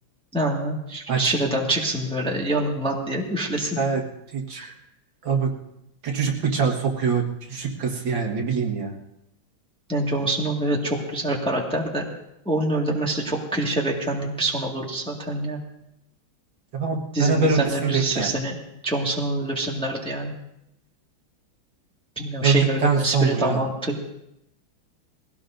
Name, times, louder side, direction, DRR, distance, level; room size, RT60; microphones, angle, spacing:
voice 1, 0.3-3.8 4.6-4.7 9.9-12.1 12.4-15.6 17.1-18.6 18.8-20.3 22.1-24.0, right 1 dB, 5° left, -1 dB, 1.5 m, -26 dB
voice 2, 6.0-8.9 16.7-18.3 22.4-23.6, right 5 dB, 65° right, 0 dB, 2.4 m, -23 dB
22.0 x 17.0 x 2.6 m, 0.83 s
omnidirectional pair, 2.3 m